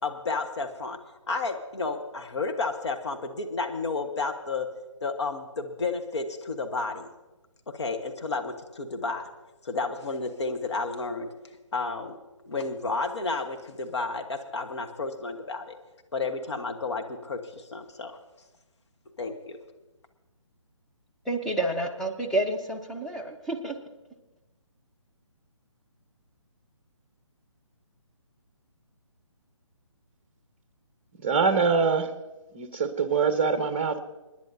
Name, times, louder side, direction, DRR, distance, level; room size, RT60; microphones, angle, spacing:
voice 1, 0.0-1.0 1.3-4.7 5.0-7.1 7.7-9.3 9.6-11.3 11.7-12.1 12.4-15.7 16.1-18.2 19.2-19.6, left 3 dB, 60° left, 4 dB, 1.4 m, -31 dB
voice 2, 21.3-23.7, right 1 dB, ahead, 0 dB, 0.6 m, -29 dB
voice 3, 31.2-32.1 32.5-34.0, right 5 dB, 25° right, 9 dB, 0.9 m, -24 dB
29.0 x 10.5 x 2.8 m, 1.1 s
figure-of-eight pair, 145°, 16 cm